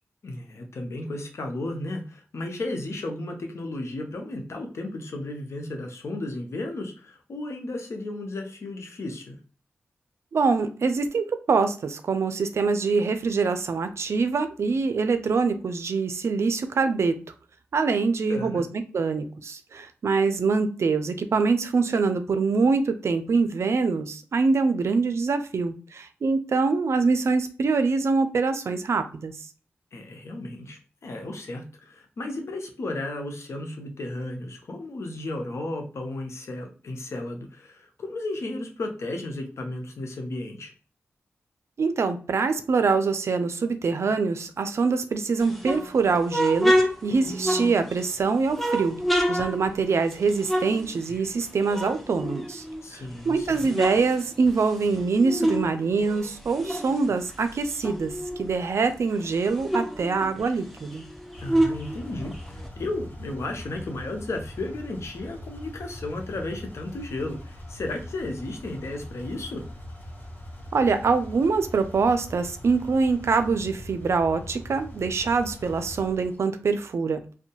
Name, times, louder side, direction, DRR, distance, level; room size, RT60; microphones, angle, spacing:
voice 1, 0.2-9.4 18.3-18.7 29.9-40.7 52.8-53.7 61.4-69.7, left 2 dB, 70° left, 3 dB, 0.7 m, -34 dB
voice 2, 10.3-17.2 17.7-18.7 18.9-29.3 41.8-46.8 47.0-49.0 49.3-52.6 53.3-61.0 70.7-77.2, right 4 dB, 65° right, 9 dB, 0.4 m, -24 dB
sound 1, 45.4-48.1 48.5-51.4 51.7-53.0 53.4-55.7 56.0-58.5 58.9-59.0 59.2-62.7, equal, 5° left, 0.7 m, -27 dB
sound 2, 61.3-76.4, left 1 dB, 40° left, 1.0 m, -41 dB
2.6 x 2.2 x 2.8 m, 0.39 s
cardioid pair, 45°, 5 cm